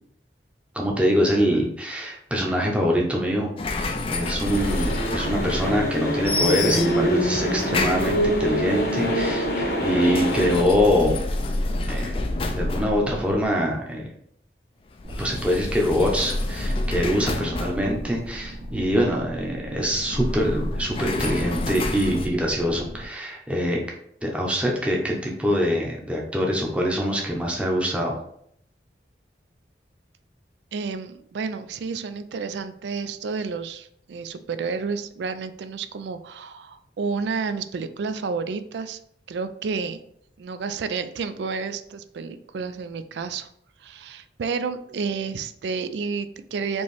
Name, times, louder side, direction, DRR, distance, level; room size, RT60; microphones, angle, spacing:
voice 1, 0.7-11.2 11.9-12.2 12.6-14.1 15.2-23.8 24.2-28.2, equal, 5° right, -1 dB, 0.7 m, -24 dB
sound 1, 3.6-6.0 6.2-7.2 7.7-8.6 9.9-13.5 15.0-19.0 20.0-22.3, left 2 dB, 30° left, 0.3 m, -29 dB
sound 2, 4.4-10.6, equal, 55° left, 0.9 m, -25 dB
sound 3, 15.0-23.1, right 1 dB, 60° right, 1.3 m, -38 dB
voice 2, 30.7-39.0 39.3-40.0 40.4-43.5 43.8-46.8, right 5 dB, 75° right, 11 dB, 0.4 m, -30 dB
4.4 x 3.0 x 3.2 m, 0.68 s
head